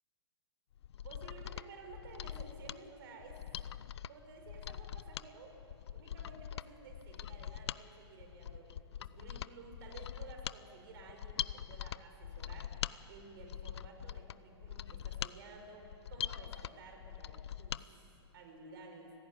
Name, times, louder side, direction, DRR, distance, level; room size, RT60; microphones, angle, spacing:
Mechanisms, 0.8-17.8 18.2-18.3, left 10 dB, 70° left, 0.6 m, -43 dB
voice 1, 1.0-3.4 4.1-5.5 5.9-8.7 9.0-12.7 13.1-19.1, right 3 dB, 55° right, 3 dB, 5.6 m, -53 dB
25.5 x 17.0 x 9.5 m, 3.0 s
hypercardioid pair, 145°, 14 cm